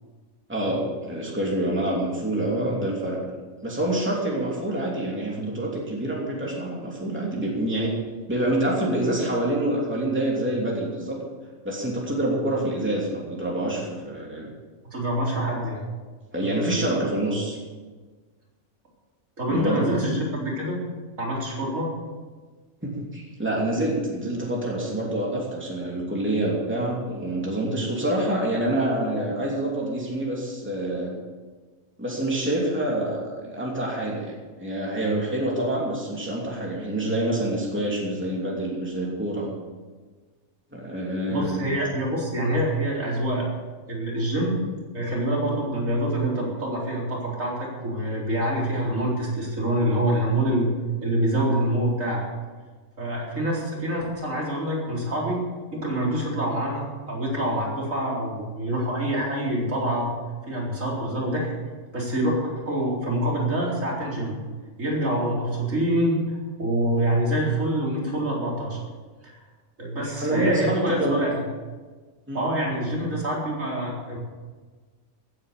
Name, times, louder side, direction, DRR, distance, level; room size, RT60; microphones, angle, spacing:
voice 1, 0.5-3.2 3.6-8.0 8.3-11.2 11.6-14.5 16.3-17.6 19.5-19.9 22.8-31.1 32.0-39.5 40.7-41.7 70.2-71.2 72.3-72.5, right 1 dB, 10° right, -3 dB, 3.0 m, -26 dB
voice 2, 14.9-15.8 16.4-16.5 19.4-20.8 21.2-21.9 41.3-43.4 43.9-44.6 44.9-50.7 51.0-52.3 53.0-55.4 55.7-60.1 60.5-61.5 61.9-64.4 64.8-68.8 69.2-69.3 69.8-71.4 72.3-74.2, right 1 dB, 70° right, -4 dB, 4.6 m, -26 dB
16.0 x 9.7 x 6.7 m, 1.4 s
omnidirectional pair, 1.4 m